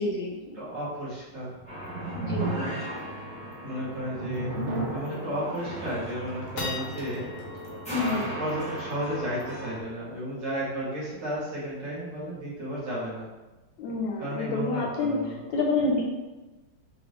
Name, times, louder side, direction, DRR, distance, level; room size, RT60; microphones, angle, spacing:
voice 1, 0.0-0.6 2.1-2.5 7.9-8.3 13.8-16.0, left 3 dB, 70° left, -1 dB, 1.2 m, -28 dB
voice 2, 0.6-1.5 2.4-2.8 3.6-4.5 4.9-7.3 7.9-13.3 14.2-15.4, equal, 70° right, -8 dB, 2.3 m, -33 dB
sound 1, 1.5-8.6, right 2 dB, 55° right, 1.0 m, -36 dB
sound 2, 1.7-9.8, equal, 5° left, 0.6 m, -39 dB
sound 3, 3.9-4.2 4.6-4.7 5.3-5.7 6.1-12.7, left 3 dB, 90° left, 1.8 m, -43 dB
5.8 x 2.6 x 3.3 m, 1.1 s
omnidirectional pair, 2.3 m